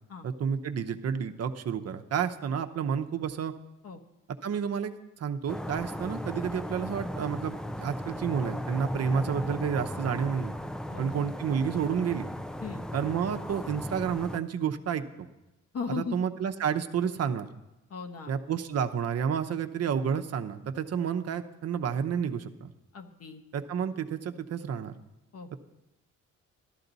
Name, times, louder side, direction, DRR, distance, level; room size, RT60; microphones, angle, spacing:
voice 1, 0.2-3.5 4.4-10.5 11.0-12.3 12.9-15.3 16.0-17.5 18.3-22.7 23.5-25.0, right 7 dB, 55° right, 7 dB, 0.8 m, -30 dB
sound 1, 5.5-14.4, equal, ahead, 0.4 m, -36 dB
voice 2, 15.7-16.2 17.9-18.3 22.9-23.4 25.3-25.6, left 5 dB, 50° left, 5 dB, 1.2 m, -37 dB
12.5 x 12.5 x 4.0 m, 0.99 s
cardioid pair, 90°, 30 cm